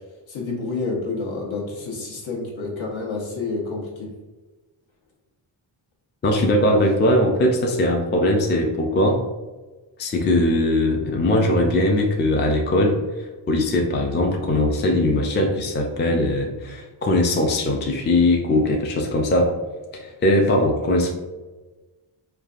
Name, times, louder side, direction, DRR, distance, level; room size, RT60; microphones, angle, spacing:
voice 1, 0.3-4.1, left 3 dB, 70° left, -2 dB, 1.0 m, -29 dB
voice 2, 6.2-9.2 10.0-19.6 19.9-21.1, left 1 dB, 25° left, 1 dB, 0.3 m, -20 dB
3.2 x 2.4 x 2.4 m, 1.2 s
cardioid pair, 85°, 49 cm